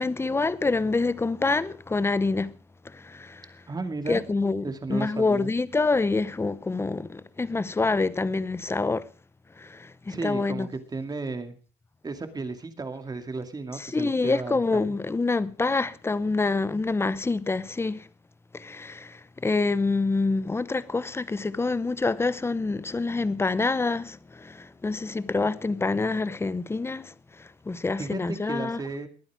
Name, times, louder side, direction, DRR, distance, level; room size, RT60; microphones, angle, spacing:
voice 1, 0.0-2.5 2.8-3.6 4.1-4.6 4.9-9.0 9.6-10.7 13.8-18.1 18.5-28.8, left 3 dB, 15° left, 0.8 m, -26 dB
voice 2, 3.7-4.2 4.6-5.5 10.1-11.6 12.0-14.9 28.0-29.1, right 3 dB, 25° right, 2.3 m, -34 dB
21.0 x 9.3 x 4.8 m
cardioid pair, 110°, 17 cm